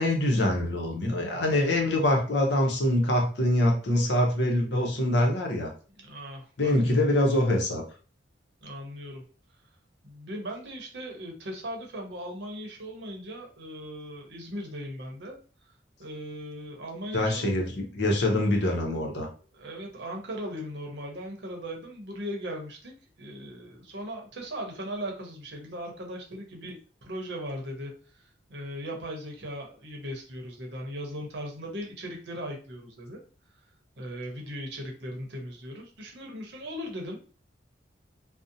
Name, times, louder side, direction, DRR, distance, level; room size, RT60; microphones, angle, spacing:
voice 1, 0.0-5.7 6.6-7.8 17.1-19.3, left 1 dB, 65° left, 2 dB, 0.6 m, -24 dB
voice 2, 6.0-7.0 8.6-9.2 10.0-15.4 16.0-17.6 19.5-22.9 23.2-28.2 28.5-33.2 34.0-37.3, equal, 65° right, 1 dB, 0.7 m, -38 dB
2.6 x 2.0 x 2.6 m, 0.38 s
head